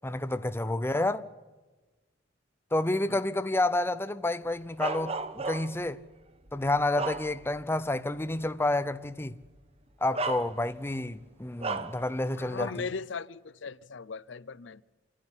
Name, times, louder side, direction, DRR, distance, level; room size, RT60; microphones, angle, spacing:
voice 1, 0.0-1.3 2.7-6.0 6.5-9.4 10.0-12.7, left 2 dB, 10° left, 0.6 m, -29 dB
voice 2, 3.1-3.4 12.4-14.8, left 5 dB, 70° left, 0.6 m, -39 dB
Bark, 4.8-5.9 6.5-7.7 8.1-8.3 9.4-9.6 10.1-10.9 11.6-12.0, right 3 dB, 30° right, 1.0 m, -34 dB
27.0 x 11.5 x 9.9 m
head